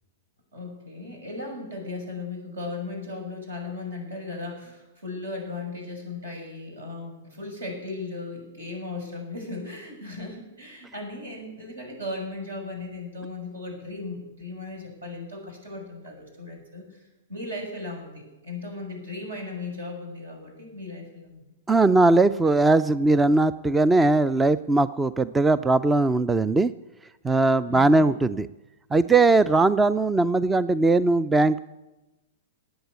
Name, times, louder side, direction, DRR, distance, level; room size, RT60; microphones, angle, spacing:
voice 1, 0.5-21.4 27.7-28.1, left 2 dB, 75° right, 2 dB, 6.5 m, -37 dB
voice 2, 21.7-26.7 27.2-28.5 28.9-31.6, right 3 dB, 10° right, 17 dB, 0.4 m, -20 dB
19.0 x 8.7 x 8.3 m, 1.1 s
figure-of-eight pair, 105°, 0 cm